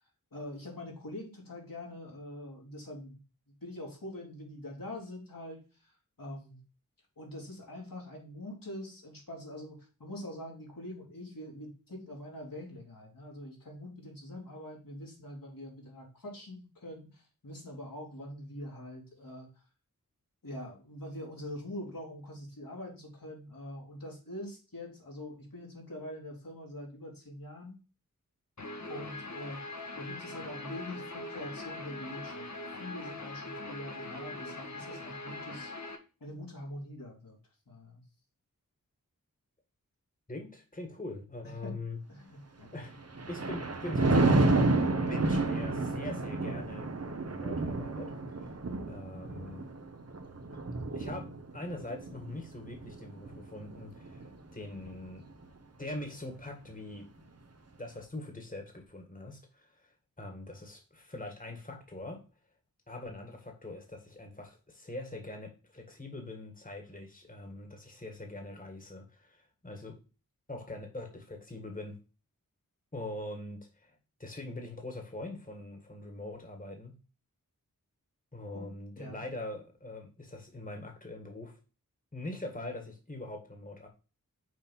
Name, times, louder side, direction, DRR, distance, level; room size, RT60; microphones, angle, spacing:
voice 1, 0.3-3.2 3.6-5.9 6.2-6.6 7.2-19.5 20.4-27.8 28.9-32.5 32.8-35.7 36.2-37.4 37.7-38.0 41.6-41.8 42.1-42.7 78.5-78.7 79.0-79.2, left 1 dB, 75° left, -2 dB, 2.9 m, -44 dB
Guitar, 28.6-36.0, left 2 dB, 55° left, 1.5 m, -42 dB
voice 2, 40.3-42.0 42.7-46.9 47.2-48.5 48.9-49.7 50.9-55.3 55.8-57.2 57.8-59.9 60.2-62.2 62.9-69.9 70.5-72.0 72.9-76.9 78.3-81.6 82.1-83.9, left 2 dB, 25° left, 3 dB, 1.8 m, -43 dB
Thunder, 42.8-54.3 54.8-55.1, right 2 dB, 45° right, 1.0 m, -30 dB
6.2 x 4.1 x 5.5 m, 0.33 s
wide cardioid pair, 40°, 34 cm